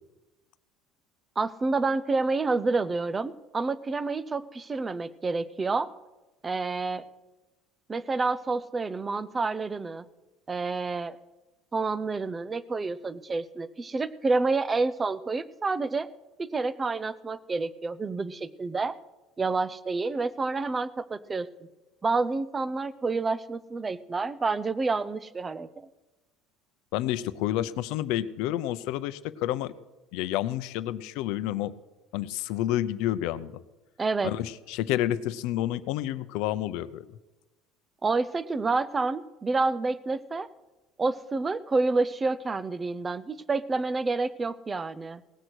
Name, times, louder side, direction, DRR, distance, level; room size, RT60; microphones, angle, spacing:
voice 1, 1.4-5.9 6.4-7.0 7.9-10.1 10.5-11.2 11.7-16.1 16.4-19.0 19.4-21.5 22.0-25.9 34.0-34.3 38.0-40.5 41.0-45.4, right 3 dB, 15° right, 17 dB, 0.4 m, -28 dB
voice 2, 26.9-29.7 30.1-31.7 32.1-33.5 34.2-37.1, left 13 dB, 60° left, 14 dB, 0.6 m, -29 dB
18.0 x 8.1 x 6.1 m, 1.1 s
cardioid pair, 180°, 0 cm